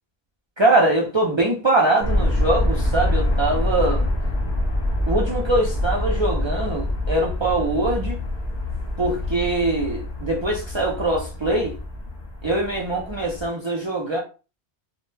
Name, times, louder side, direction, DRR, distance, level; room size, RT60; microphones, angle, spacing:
voice 1, 0.6-4.1 5.1-8.2 9.0-11.7 12.4-14.2, right 2 dB, 50° right, -2 dB, 0.3 m, -22 dB
sound 1, 2.0-13.5, left 1 dB, 45° left, 0.8 m, -25 dB
2.1 x 2.1 x 3.1 m, 0.33 s
omnidirectional pair, 1.1 m